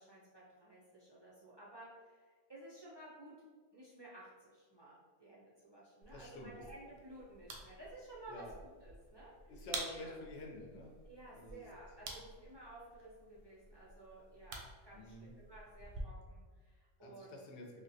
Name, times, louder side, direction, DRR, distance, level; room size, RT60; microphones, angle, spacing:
voice 1, 0.0-3.3 3.7-9.3 9.6-10.1 11.0-17.4, right 1 dB, 40° right, -7 dB, 0.3 m, -55 dB
sound 1, 6.0-16.0, right 3 dB, 85° right, 1.0 m, -50 dB
voice 2, 6.1-6.6 8.3-8.6 9.5-10.9 11.3-11.7 14.9-15.3 17.0-17.8, left 1 dB, 65° left, 0 dB, 0.9 m, -49 dB
3.6 x 2.2 x 2.6 m, 1.5 s
omnidirectional pair, 1.3 m